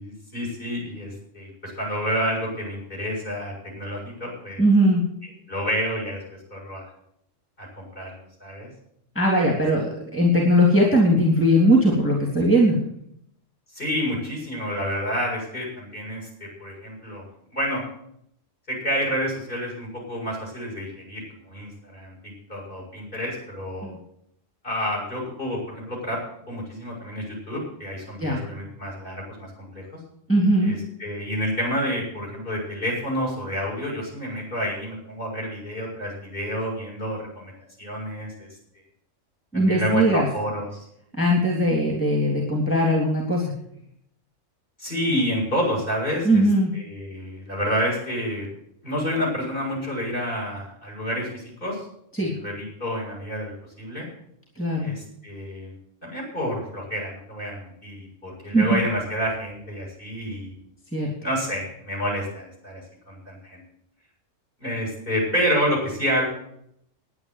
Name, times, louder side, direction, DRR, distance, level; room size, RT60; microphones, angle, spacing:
voice 1, 0.0-4.6 5.5-6.2 6.5-6.9 7.6-8.7 13.7-17.8 18.7-23.9 24.6-26.2 26.5-30.0 30.6-37.5 37.8-38.5 39.5-40.9 44.8-46.4 46.7-48.5 48.8-51.9 52.2-54.1 54.8-55.7 56.0-60.6 61.2-62.8 63.1-63.6 64.6-66.3, equal, 40° left, -2 dB, 7.4 m, -29 dB
voice 2, 4.6-5.0 9.1-12.8 28.2-28.4 30.3-30.8 39.5-40.3 41.2-43.5 46.2-46.7 52.1-52.3 54.6-54.9 58.5-58.8 60.9-61.1, equal, 10° left, -1 dB, 3.1 m, -19 dB
11.0 x 10.0 x 9.5 m, 0.74 s
omnidirectional pair, 1.3 m